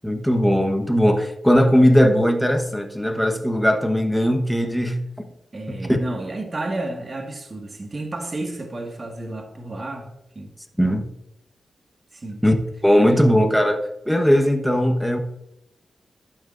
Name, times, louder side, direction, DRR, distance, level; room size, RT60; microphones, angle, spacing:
voice 1, 0.0-5.0 5.7-6.0 10.8-11.1 12.4-12.5 12.8-15.2, equal, ahead, 5 dB, 1.2 m, -19 dB
voice 2, 5.5-10.5 12.1-12.4, right 2 dB, 40° right, 2 dB, 1.8 m, -31 dB
11.5 x 8.7 x 2.6 m, 0.85 s
cardioid pair, 70°, 0 cm